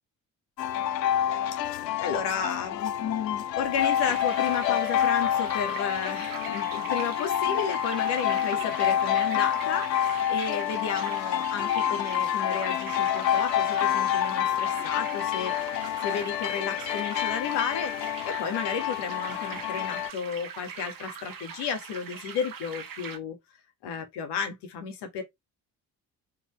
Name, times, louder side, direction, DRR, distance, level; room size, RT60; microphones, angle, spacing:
sound 1, 0.6-20.1, left 10 dB, 80° left, 0.6 m, -28 dB
voice 1, 1.6-23.4 23.8-25.2, left 6 dB, 55° left, 2.2 m, -33 dB
sound 2, 3.8-23.2, right 6 dB, 40° right, 1.6 m, -42 dB
6.0 x 4.8 x 3.2 m
figure-of-eight pair, 45°, 49 cm